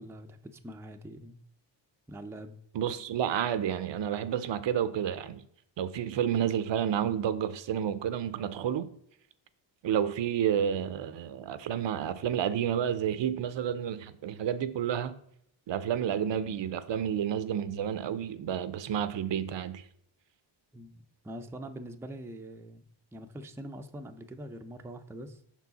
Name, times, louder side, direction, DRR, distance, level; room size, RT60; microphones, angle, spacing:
voice 1, 0.0-1.4 2.1-2.5 20.7-22.8 23.1-25.4, right 1 dB, 5° right, 0.4 m, -44 dB
voice 2, 2.7-5.4 5.8-8.9 9.8-15.2 15.7-19.8, right 9 dB, 65° right, 0.6 m, -30 dB
5.8 x 4.6 x 4.0 m
cardioid pair, 85°, 47 cm